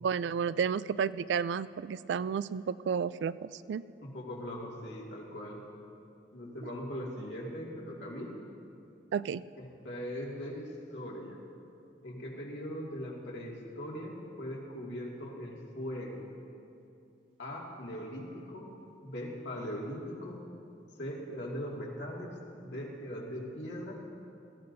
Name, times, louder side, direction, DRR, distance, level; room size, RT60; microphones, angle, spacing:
voice 1, 0.0-3.8 9.1-9.4, right 6 dB, 80° right, 17 dB, 0.3 m, -32 dB
voice 2, 4.0-5.6 6.3-8.3 9.6-11.4 12.0-16.2 17.4-18.7 19.0-20.4 21.0-22.3 22.6-24.0, equal, 80° left, -3 dB, 2.2 m, -40 dB
19.0 x 14.5 x 2.7 m, 2.6 s
head